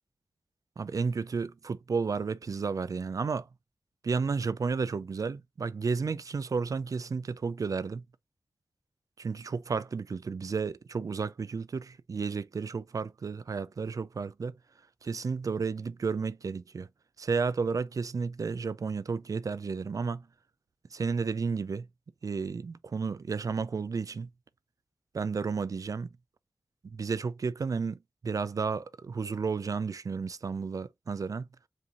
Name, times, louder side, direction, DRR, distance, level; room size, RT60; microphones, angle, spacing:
voice 1, 0.8-3.5 4.0-8.0 9.2-14.6 15.0-16.9 17.2-20.2 20.9-21.9 22.2-24.3 25.1-26.1 26.8-28.0 28.2-31.5, right 5 dB, 60° right, 0.4 m, -32 dB
7.4 x 2.6 x 2.5 m
cardioid pair, 45°, 7 cm